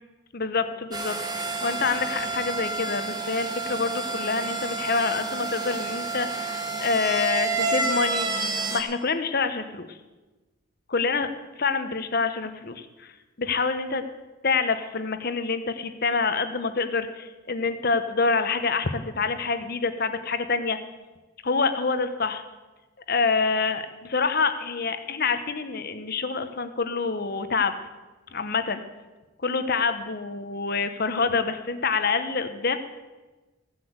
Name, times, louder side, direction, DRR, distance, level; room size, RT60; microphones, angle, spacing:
voice 1, 0.3-10.0 10.9-11.3 11.6-13.1 13.4-14.0 14.4-20.8 21.4-22.4 23.1-27.7 28.3-28.8 29.4-32.8, left 4 dB, 45° left, 10 dB, 0.9 m, -26 dB
sound 1, 0.9-8.8, right 3 dB, 20° right, 1.4 m, -29 dB
15.0 x 8.0 x 8.0 m, 1.2 s
head